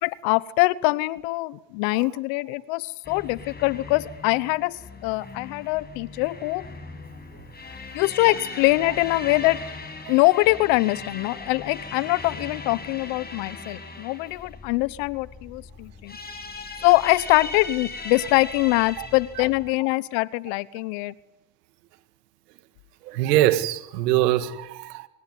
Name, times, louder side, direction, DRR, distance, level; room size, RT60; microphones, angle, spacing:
voice 1, 0.0-6.7 7.9-9.6 10.1-16.2 16.8-21.1, left 21 dB, 70° left, 1.3 m, -23 dB
sound 1, 3.0-19.7, left 3 dB, 20° left, 7.4 m, -39 dB
voice 2, 23.1-25.1, right 14 dB, 85° right, 2.1 m, -23 dB
26.5 x 21.5 x 9.6 m
supercardioid pair, 80°, 47 cm